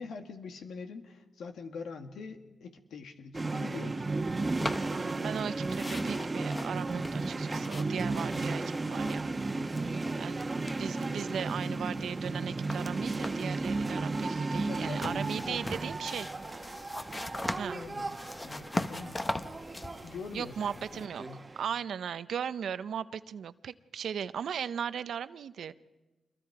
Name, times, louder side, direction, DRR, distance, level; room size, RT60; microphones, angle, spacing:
voice 1, 0.0-4.0 14.6-15.6 17.7-18.2 18.4-19.2 20.0-21.4, left 5 dB, 85° left, 6 dB, 1.9 m, -44 dB
sound 1, 3.3-21.6, right 3 dB, 35° right, 1.3 m, -34 dB
sound 2, 4.5-5.4 5.7-9.4 9.7-11.1 11.4-13.6 14.8-21.1, left 2 dB, 25° left, 1.2 m, -40 dB
voice 2, 5.0-9.2 10.2-16.3 17.6-17.8 20.3-21.2 21.6-25.7, right 8 dB, 80° right, 14 dB, 0.7 m, -37 dB
27.5 x 22.0 x 4.8 m, 1.1 s
cardioid pair, 65°, 0 cm